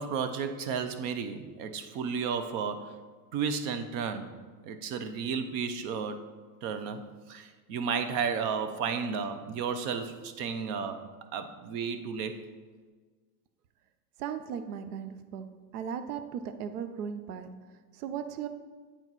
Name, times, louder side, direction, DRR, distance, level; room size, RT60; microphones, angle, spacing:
voice 1, 0.0-3.0 3.3-4.3 4.6-6.2 6.6-11.0 11.3-12.4, right 6 dB, 40° right, 9 dB, 0.7 m, -33 dB
voice 2, 14.2-15.4 15.7-17.5 17.9-18.5, right 8 dB, 75° right, 10 dB, 0.7 m, -37 dB
8.8 x 4.5 x 4.0 m, 1.4 s
supercardioid pair, 135°, 46 cm